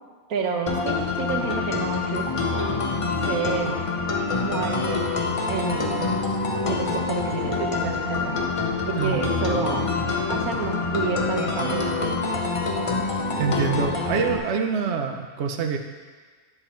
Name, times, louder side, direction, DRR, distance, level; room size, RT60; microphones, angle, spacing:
voice 1, 0.3-2.8 3.3-3.8 4.4-5.1 5.5-6.2 6.7-8.5 8.9-9.9 10.3-12.2, right 5 dB, 85° right, 2 dB, 1.5 m, -29 dB
sound 1, 0.7-14.4, left 3 dB, 30° left, 0.7 m, -26 dB
voice 2, 8.9-9.3 13.4-15.8, right 6 dB, 60° right, 4 dB, 0.9 m, -25 dB
10.0 x 7.3 x 4.4 m, 1.5 s
omnidirectional pair, 1.5 m